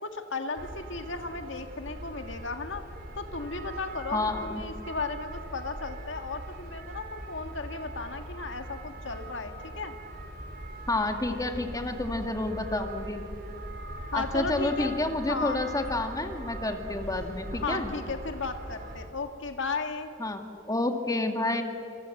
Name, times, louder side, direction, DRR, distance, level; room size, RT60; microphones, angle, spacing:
voice 1, 0.0-2.8 3.2-9.9 14.1-14.9 15.3-15.6 17.5-20.1, left 4 dB, 65° left, 6 dB, 1.8 m, -35 dB
sound 1, 0.6-19.1, right 1 dB, 50° right, 3.2 m, -41 dB
voice 2, 4.1-4.6 10.9-13.2 14.1-17.9 20.2-21.6, left 2 dB, 20° left, 5 dB, 2.0 m, -29 dB
28.0 x 27.0 x 7.8 m, 2.7 s
head